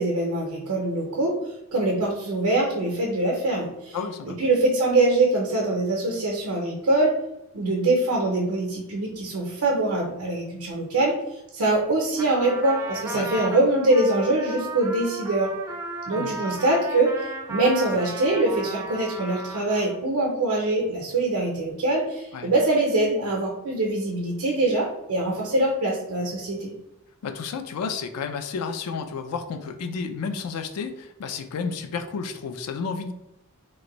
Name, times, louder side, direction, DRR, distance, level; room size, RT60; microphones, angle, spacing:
voice 1, 0.0-1.4 1.7-4.0 4.3-7.1 7.5-11.2 11.5-15.5 16.1-26.7, right 2 dB, 80° right, -2 dB, 0.6 m, -23 dB
voice 2, 3.9-4.4 13.1-13.3 16.2-16.3 22.3-22.5 27.2-33.1, left 5 dB, 85° left, 7 dB, 0.4 m, -31 dB
Trumpet, 12.2-20.0, right 2 dB, 15° right, 0.3 m, -35 dB
3.0 x 2.5 x 2.9 m, 0.89 s
head